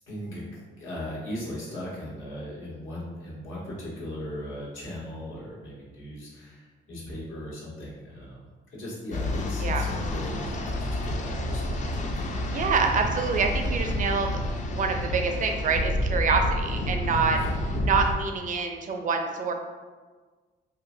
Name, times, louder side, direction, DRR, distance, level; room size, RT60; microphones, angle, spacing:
voice 1, 0.1-8.5 8.7-12.6 17.3-17.6, equal, 80° left, -6 dB, 1.2 m, -38 dB
sound 1, 9.1-18.2, left 1 dB, 40° left, 0.4 m, -29 dB
voice 2, 12.5-14.3 14.7-17.4 17.8-19.5, right 5 dB, 40° right, 4 dB, 0.4 m, -26 dB
2.8 x 2.5 x 2.6 m, 1.4 s
cardioid pair, 90°, 20 cm